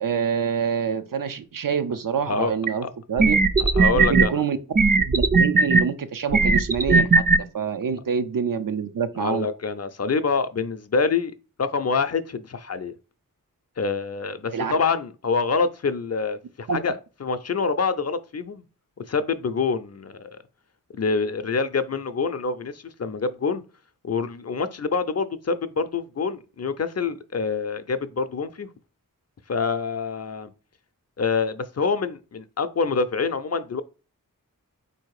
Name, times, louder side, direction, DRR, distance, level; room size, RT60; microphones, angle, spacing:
voice 1, 0.0-3.4 3.9-4.6 5.0-7.1 7.4-9.5 14.5-14.7 16.7-16.8, right 6 dB, 70° right, 0.6 m, -26 dB
sound 1, 2.7-2.8 3.2-4.3 4.8-5.8 6.3-7.4, right 4 dB, 25° right, 0.4 m, -17 dB
voice 2, 3.6-4.4 9.2-12.9 13.8-18.6 19.1-20.4 20.9-23.6 24.0-28.7 29.5-30.5 31.2-33.8, left 4 dB, 50° left, 0.5 m, -26 dB
4.1 x 2.7 x 4.7 m
wide cardioid pair, 55°, 34 cm